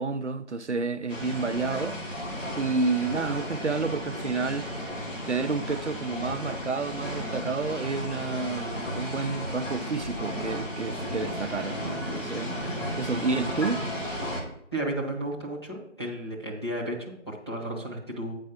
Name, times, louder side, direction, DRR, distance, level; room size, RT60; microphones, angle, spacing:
voice 1, 0.0-2.0 2.6-4.8 5.3-13.8, right 4 dB, 65° right, 0.5 m, -30 dB
sound 1, 1.1-14.4, equal, 90° left, 3.3 m, -34 dB
voice 2, 14.7-18.3, right 1 dB, 20° left, 1.3 m, -33 dB
8.2 x 4.6 x 6.1 m
figure-of-eight pair, 175°, 37 cm